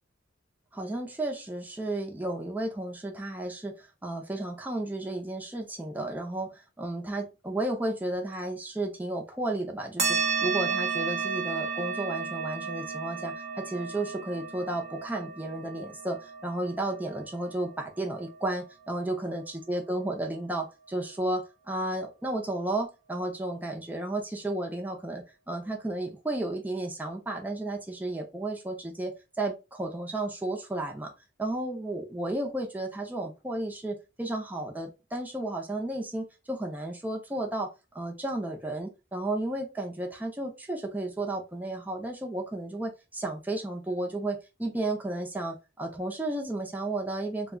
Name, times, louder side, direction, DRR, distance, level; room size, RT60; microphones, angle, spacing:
voice 1, 0.7-31.1 31.4-47.6, right 2 dB, 10° right, 1 dB, 0.5 m, -33 dB
sound 1, 10.0-18.9, right 5 dB, 35° right, 0.7 m, -33 dB
2.3 x 2.2 x 3.5 m, 0.27 s
head